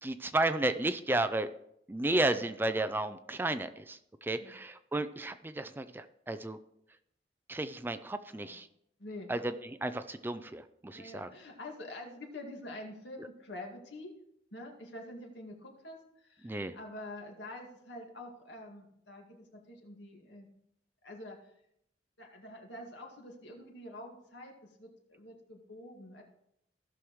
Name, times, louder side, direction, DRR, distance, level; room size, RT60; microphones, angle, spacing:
voice 1, 0.0-1.5 1.9-6.6 7.5-8.7 9.3-11.3 16.4-16.7, right 2 dB, 10° right, 11 dB, 0.3 m, -33 dB
voice 2, 9.0-9.3 10.9-14.1 14.5-20.5 21.0-21.5 22.2-26.2, left 1 dB, 75° left, 1 dB, 2.1 m, -47 dB
16.5 x 6.3 x 3.1 m, 0.76 s
head